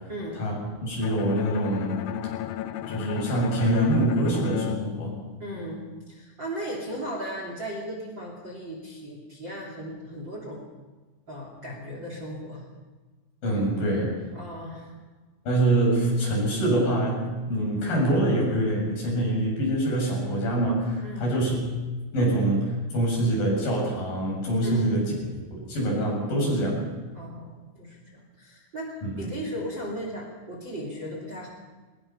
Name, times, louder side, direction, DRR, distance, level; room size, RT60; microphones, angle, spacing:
voice 1, 0.1-0.4 5.4-10.7 11.3-12.6 14.3-14.9 21.0-21.3 24.6-24.9 27.1-31.5, equal, 30° right, 0 dB, 3.3 m, -36 dB
voice 2, 0.8-2.0 2.9-5.1 13.4-14.1 15.5-21.6 22.1-25.1 25.5-26.9 29.0-29.3, right 1 dB, 50° left, -2 dB, 9.0 m, -25 dB
Bowed string instrument, 1.0-5.9, left 12 dB, 80° left, 2.1 m, -34 dB
24.0 x 20.5 x 5.7 m, 1.3 s
omnidirectional pair, 5.1 m